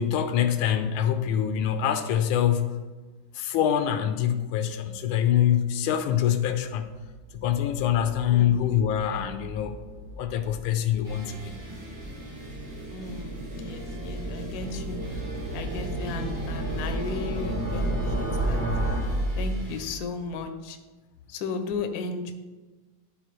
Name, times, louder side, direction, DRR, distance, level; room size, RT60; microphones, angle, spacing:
voice 1, 0.0-2.8 3.3-6.9 7.3-9.8 10.2-11.6, left 10 dB, 85° left, 9 dB, 1.4 m, -25 dB
sound 1, 7.1-20.0, right 1 dB, 35° right, 1.0 m, -32 dB
voice 2, 8.3-8.7 12.9-15.0 15.5-18.6 19.4-20.8 21.3-22.3, left 4 dB, 65° left, 7 dB, 1.0 m, -35 dB
sound 2, 11.0-19.9, right 1 dB, 75° right, 2.8 m, -44 dB
12.0 x 4.3 x 3.1 m, 1.2 s
omnidirectional pair, 2.3 m